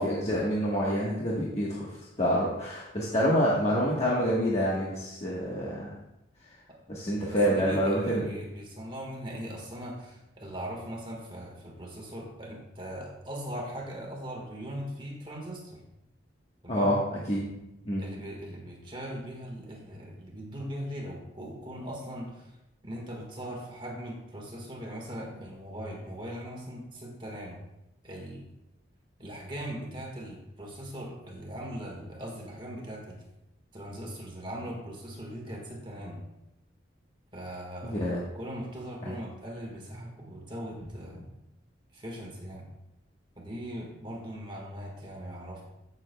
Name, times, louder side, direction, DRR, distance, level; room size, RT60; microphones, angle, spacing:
voice 1, 0.0-6.0 6.9-8.3 16.7-18.1 37.8-38.2 39.0-39.1, equal, 35° left, -5 dB, 1.2 m, -27 dB
voice 2, 7.3-15.8 16.6-16.9 18.0-22.6 22.8-27.6 28.0-28.4 29.2-33.2 33.7-36.2 37.3-38.0 38.3-41.2 41.9-42.7 43.4-45.6, equal, 25° right, 0 dB, 1.4 m, -40 dB
14.5 x 6.6 x 2.2 m, 0.92 s
head